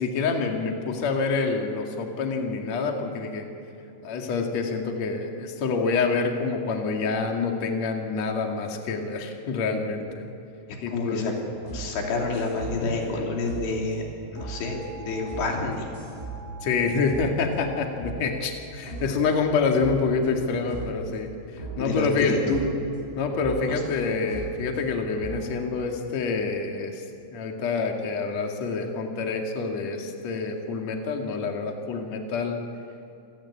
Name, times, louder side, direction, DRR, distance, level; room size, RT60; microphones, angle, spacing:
voice 1, 0.0-3.5 4.0-10.3 10.8-11.4 13.1-13.3 16.6-22.4 23.2-27.0 27.3-32.6, left 4 dB, 45° left, 2 dB, 3.0 m, -27 dB
voice 2, 10.9-11.3 11.7-14.0 14.3-15.9 21.8-22.6 23.7-23.8, left 3 dB, 90° left, 0 dB, 5.3 m, -28 dB
sound 1, 11.5-17.6 18.0-19.4 19.8-21.1 21.6-22.8 23.4-25.5, right 3 dB, 15° right, 6.2 m, -38 dB
27.5 x 17.5 x 8.6 m, 2.7 s
omnidirectional pair, 4.8 m